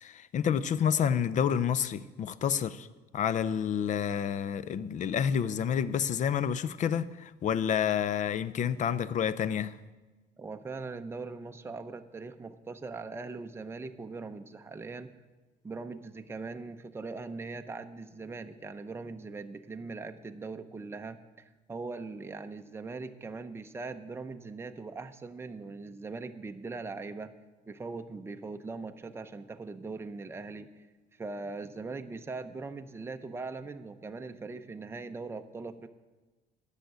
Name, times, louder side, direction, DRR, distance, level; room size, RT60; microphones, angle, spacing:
voice 1, 0.0-2.9 3.1-9.7, left 8 dB, 45° left, 0.5 m, -29 dB
voice 2, 10.4-15.1 15.6-27.3 27.7-30.9 31.2-35.9, right 3 dB, 15° right, 0.6 m, -41 dB
10.5 x 6.5 x 8.2 m
cardioid pair, 110°, 17 cm